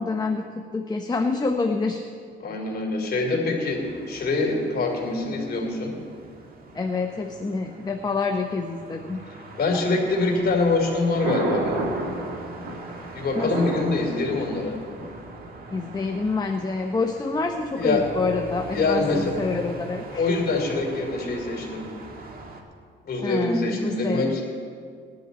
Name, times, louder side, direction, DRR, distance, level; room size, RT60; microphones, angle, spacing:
voice 1, 0.0-2.0 6.7-9.2 13.4-13.7 15.7-20.3 23.2-24.5, left 4 dB, 20° left, 4 dB, 0.9 m, -27 dB
voice 2, 2.4-5.9 9.6-11.8 13.1-14.8 17.7-18.1 18.7-19.3 20.2-21.9 23.0-24.4, left 3 dB, 55° left, 1 dB, 3.3 m, -24 dB
sound 1, 3.6-22.6, right 2 dB, 50° right, 1.8 m, -42 dB
Thunder, 10.4-16.4, right 2 dB, 90° right, 2.5 m, -32 dB
19.5 x 11.0 x 4.1 m, 2.1 s
cardioid pair, 90°, 20 cm